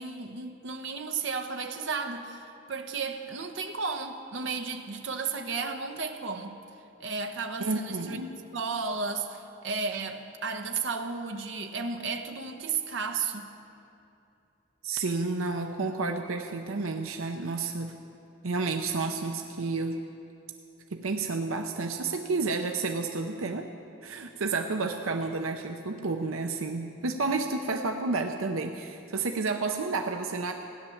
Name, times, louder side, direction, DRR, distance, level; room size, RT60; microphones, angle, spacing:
voice 1, 0.0-6.6 7.0-8.2 8.5-13.5, right 4 dB, 65° right, 5 dB, 1.0 m, -33 dB
voice 2, 7.6-8.3 14.8-18.0 18.4-20.0 20.9-23.7 24.0-30.5, right 3 dB, 85° right, 5 dB, 0.7 m, -30 dB
16.0 x 10.5 x 7.1 m, 2.7 s
head